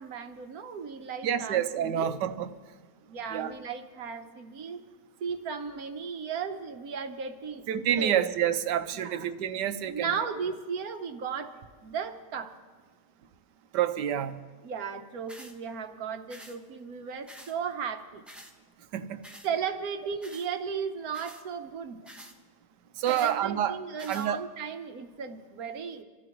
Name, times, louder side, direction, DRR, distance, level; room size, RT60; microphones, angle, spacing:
voice 1, 0.0-2.1 3.0-4.8 5.2-8.2 9.0-9.2 9.9-11.5 11.8-12.5 14.6-18.2 19.4-22.1 23.1-26.0, right 6 dB, 60° right, 7 dB, 1.4 m, -35 dB
voice 2, 1.2-2.5 3.3-3.5 7.7-10.1 13.7-14.4 18.9-19.2 23.0-23.8 24.1-24.4, right 10 dB, 80° right, 10 dB, 1.4 m, -28 dB
sound 1, 15.3-15.5 16.3-16.6 17.3-17.5 18.3-18.5 19.2-19.5 20.2-20.5 21.1-21.4 22.1-22.4 23.0-23.3 24.0-24.3, equal, ahead, 1.1 m, -48 dB
26.0 x 14.5 x 3.1 m, 1.4 s
omnidirectional pair, 1.8 m